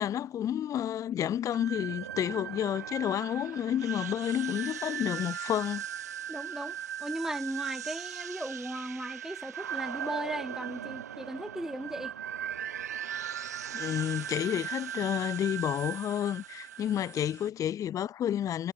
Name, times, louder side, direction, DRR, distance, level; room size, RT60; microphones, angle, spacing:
voice 1, 0.0-5.8 13.7-18.7, left 10 dB, 40° left, 0.6 m, -30 dB
sound 1, 1.5-17.5, right 9 dB, 75° right, 1.4 m, -38 dB
voice 2, 6.3-12.2, right 1 dB, 5° right, 3.9 m, -37 dB
figure-of-eight pair, 60°, 9 cm